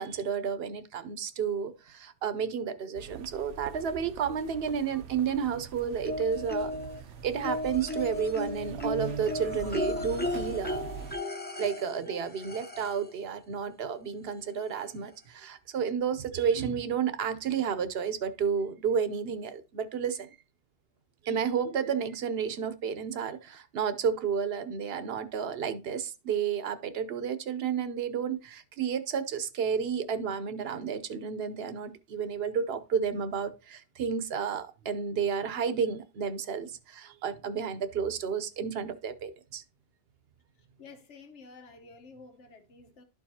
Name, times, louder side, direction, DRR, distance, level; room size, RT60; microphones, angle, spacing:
voice 1, 0.0-6.7 7.2-10.8 11.6-20.3 21.2-39.6, right 7 dB, 60° right, 0.9 m, -31 dB
sound 1, 2.9-11.1, right 7 dB, 85° right, 1.0 m, -43 dB
sound 2, 6.0-7.0 7.4-13.1 14.3-14.4 14.8-14.9, left 1 dB, 10° left, 0.5 m, -35 dB
voice 2, 40.5-43.0, left 4 dB, 85° left, 1.4 m, -51 dB
12.0 x 4.7 x 2.8 m
omnidirectional pair, 1.2 m